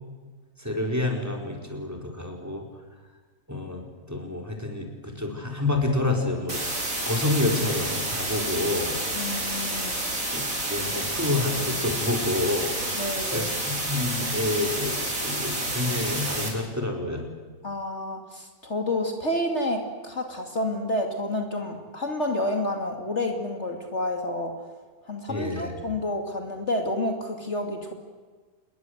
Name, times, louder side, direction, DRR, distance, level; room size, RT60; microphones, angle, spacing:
voice 1, 0.6-2.7 3.5-8.9 10.3-15.0 15.2-17.3 25.3-25.7, left 2 dB, 10° right, 1 dB, 4.7 m, -28 dB
sound 1, 6.5-16.5, right 1 dB, 60° right, 5.9 m, -29 dB
voice 2, 9.1-10.0 12.9-13.6 17.6-24.6 25.1-27.9, left 1 dB, 45° left, 3 dB, 2.9 m, -29 dB
28.0 x 21.5 x 8.2 m, 1.4 s
omnidirectional pair, 1.6 m